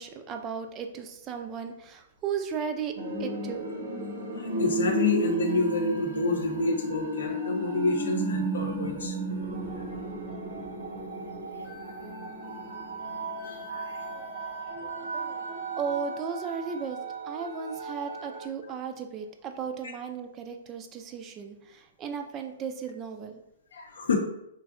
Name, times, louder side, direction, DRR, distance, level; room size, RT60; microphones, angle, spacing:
voice 1, 0.0-3.6 14.8-15.5 15.8-17.0 17.3-23.4, right 6 dB, 25° right, 6 dB, 0.3 m, -35 dB
sound 1, 2.9-18.5, right 2 dB, 70° right, 0.8 m, -34 dB
voice 2, 4.4-9.1 10.0-10.1 12.5-12.6 13.4-14.2 23.7-24.2, left 4 dB, 80° left, 2 dB, 0.5 m, -29 dB
3.1 x 2.6 x 2.4 m, 0.81 s
hypercardioid pair, 130°, 0 cm